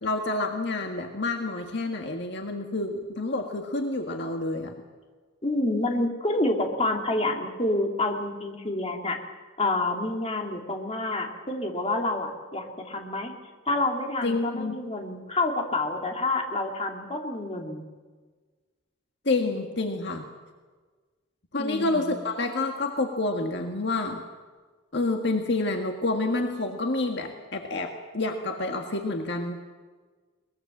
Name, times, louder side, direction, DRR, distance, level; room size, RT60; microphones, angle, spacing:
voice 1, 0.0-4.8 14.2-14.8 19.3-20.3 21.5-24.2 24.9-29.6, left 2 dB, 60° left, 3 dB, 1.7 m, -28 dB
voice 2, 5.4-9.2 9.6-13.3 13.7-17.8 21.6-22.2, left 2 dB, 30° left, 2 dB, 2.7 m, -28 dB
22.5 x 20.5 x 7.3 m, 1.4 s
head